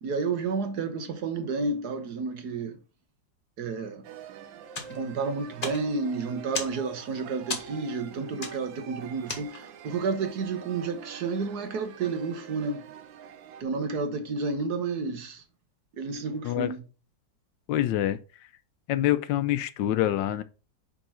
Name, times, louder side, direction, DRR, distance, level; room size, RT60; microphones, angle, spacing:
voice 1, 0.0-2.8 3.6-4.0 4.9-12.9 13.6-15.4 15.9-16.8, right 4 dB, 60° right, 1.4 m, -31 dB
sound 1, 4.0-13.6, right 7 dB, 80° right, 1.5 m, -45 dB
sound 2, 4.7-9.9, left 3 dB, 30° left, 1.4 m, -38 dB
voice 2, 17.7-18.2 18.9-20.4, left 13 dB, 80° left, 1.3 m, -26 dB
5.4 x 4.7 x 5.6 m
omnidirectional pair, 2.0 m